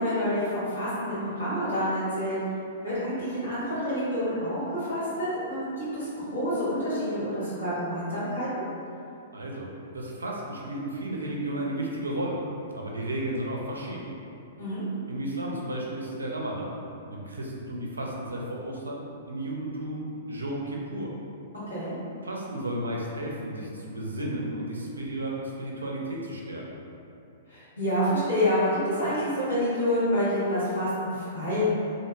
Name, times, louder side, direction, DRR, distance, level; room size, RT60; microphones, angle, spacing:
voice 1, 0.0-2.4 2.8-8.6 14.6-14.9 21.7-22.0 27.5-31.7, equal, 85° left, -11 dB, 1.3 m, -28 dB
voice 2, 9.3-12.4 12.7-14.1 15.1-16.7 17.1-21.1 22.2-26.6, right 1 dB, 80° right, -2 dB, 0.4 m, -33 dB
2.7 x 2.0 x 2.7 m, 2.7 s
figure-of-eight pair, 105°, 0 cm